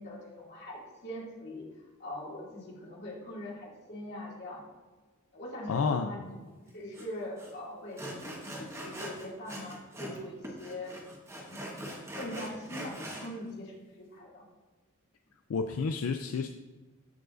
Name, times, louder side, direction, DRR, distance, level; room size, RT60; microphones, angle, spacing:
voice 1, 0.0-1.7 2.0-4.6 5.3-10.9 11.5-11.9 12.2-14.4, left 1 dB, 55° left, -4 dB, 2.3 m, -42 dB
voice 2, 5.7-6.1 15.5-16.5, left 5 dB, 80° left, 6 dB, 0.4 m, -30 dB
Sawing, 6.9-7.1 7.4-7.5 8.0-10.2 10.4-13.3, equal, 15° right, 1.2 m, -42 dB
14.0 x 4.7 x 2.5 m, 1.3 s
head